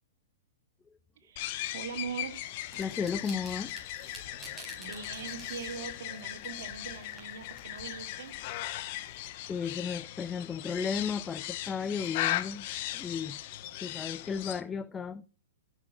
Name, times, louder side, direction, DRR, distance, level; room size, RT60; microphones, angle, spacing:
voice 1, 1.2-2.4 4.8-8.3, right 6 dB, 60° right, 2.9 m, -41 dB
sound 1, 1.4-14.6, left 14 dB, 45° left, 1.2 m, -38 dB
sound 2, 2.4-9.2, right 1 dB, 5° right, 4.5 m, -52 dB
voice 2, 2.8-3.8 4.5-4.6 9.5-12.7 12.9-13.4 13.8-15.2, left 6 dB, 15° left, 0.5 m, -34 dB
sound 3, 4.1-11.4, right 4 dB, 30° right, 5.1 m, -62 dB
14.0 x 6.5 x 6.4 m
hypercardioid pair, 130°, 0 cm